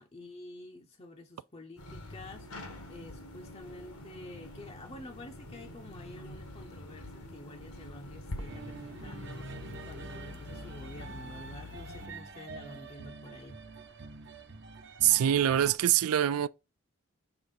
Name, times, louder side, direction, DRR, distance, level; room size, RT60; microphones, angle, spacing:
voice 1, 0.0-13.6, left 1 dB, 25° left, 0.6 m, -49 dB
sound 1, 1.8-12.1, left 1 dB, 85° left, 1.6 m, -45 dB
sound 2, 8.4-15.7, right 4 dB, 50° right, 0.8 m, -46 dB
voice 2, 15.0-16.5, right 11 dB, 85° right, 0.4 m, -24 dB
6.7 x 3.6 x 5.5 m
head